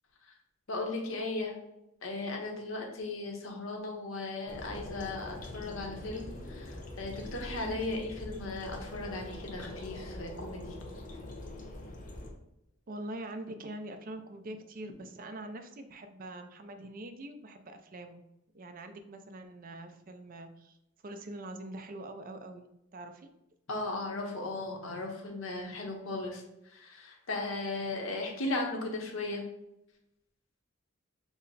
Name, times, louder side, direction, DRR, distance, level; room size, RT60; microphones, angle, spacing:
voice 1, 0.7-1.5 2.0-10.7 23.7-26.4 26.7-29.4, left 2 dB, 75° left, 1 dB, 0.9 m, -36 dB
sound 1, 4.5-12.3, left 1 dB, 40° left, 0.8 m, -43 dB
voice 2, 12.9-18.2 18.5-20.8 21.0-23.3, right 1 dB, 45° right, 7 dB, 0.5 m, -44 dB
6.0 x 2.1 x 4.0 m, 0.86 s
head